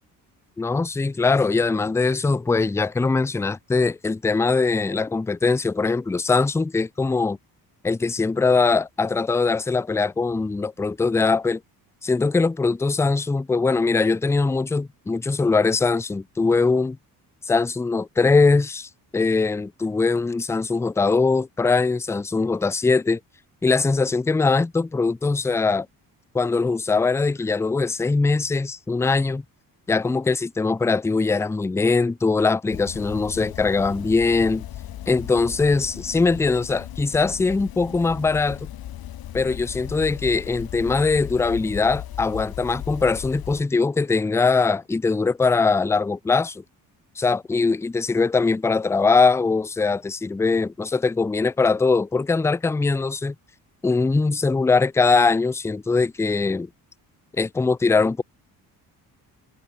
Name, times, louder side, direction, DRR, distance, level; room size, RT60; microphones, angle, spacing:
voice 1, 0.6-7.4 7.8-11.6 12.0-17.0 17.5-23.2 23.6-25.9 26.3-29.4 29.9-34.6 35.1-38.7 39.3-46.6 47.2-53.3 53.8-56.7 57.4-58.2, left 4 dB, 10° left, 0.4 m, -21 dB
sound 1, 32.7-43.6, left 12 dB, 70° left, 4.5 m, -36 dB
cardioid pair, 120°, 37 cm